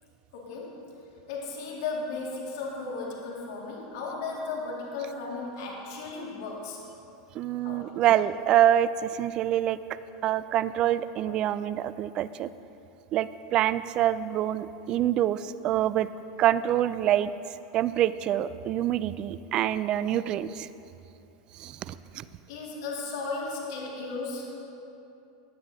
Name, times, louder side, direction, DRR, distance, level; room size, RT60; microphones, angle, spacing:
voice 1, 0.3-0.8 1.3-6.8 7.6-7.9 22.5-24.5, left 3 dB, 70° left, -3 dB, 2.0 m, -35 dB
voice 2, 7.4-9.8 10.2-12.5 13.1-16.1 16.4-17.3 17.7-20.7 21.6-22.2, right 12 dB, 45° right, 15 dB, 0.3 m, -26 dB
15.5 x 9.8 x 2.7 m, 2.8 s
hypercardioid pair, 105°, 2 cm